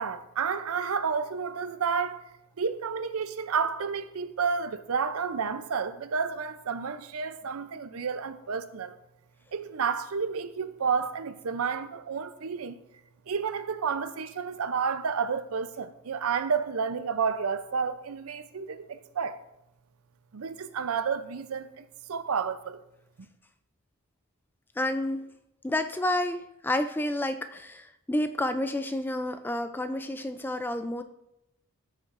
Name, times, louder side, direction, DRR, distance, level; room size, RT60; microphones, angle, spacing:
voice 1, 0.0-2.2 2.6-8.9 9.5-12.8 13.3-19.4 20.3-22.8, right 6 dB, 75° right, 0.5 m, -30 dB
voice 2, 24.8-25.3 25.6-31.0, left 1 dB, 10° left, 0.3 m, -30 dB
14.0 x 6.7 x 2.5 m
head